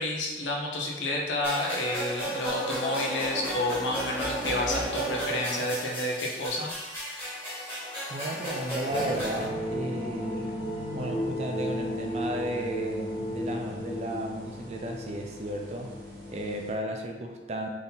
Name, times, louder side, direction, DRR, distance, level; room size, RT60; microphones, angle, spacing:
voice 1, 0.0-6.7, left 1 dB, 80° left, -1 dB, 0.8 m, -30 dB
sound 1, 1.4-9.4, right 1 dB, 10° left, 1.2 m, -33 dB
voice 2, 8.1-10.5 10.9-15.9 16.3-17.7, right 1 dB, 35° right, 3 dB, 0.4 m, -34 dB
sound 2, 8.9-16.7, equal, 50° right, 1.0 m, -34 dB
3.6 x 2.8 x 3.9 m, 1.3 s
head